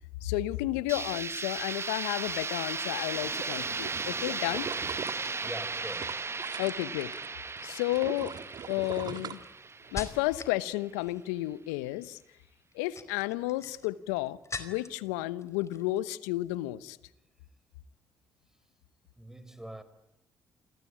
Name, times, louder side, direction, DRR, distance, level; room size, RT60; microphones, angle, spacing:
voice 1, 0.2-4.7 6.6-7.1 7.6-8.3 8.7-9.4 9.9-12.2 12.7-17.0, left 17 dB, 85° left, 1.0 m, -32 dB
sound 1, 0.9-10.7, right 4 dB, 30° right, 1.1 m, -36 dB
sound 2, 3.1-7.3 7.6-10.1 10.5-10.6, right 7 dB, 55° right, 2.2 m, -42 dB
voice 2, 5.4-6.3 19.2-19.8, right 1 dB, 5° right, 4.8 m, -43 dB
sound 3, 7.1-7.5 8.2-10.6 10.9-11.4 12.6-15.1 15.4-16.0 16.3-16.6, left 4 dB, 35° left, 4.7 m, -43 dB
29.0 x 24.0 x 8.7 m
hypercardioid pair, 45°, 8 cm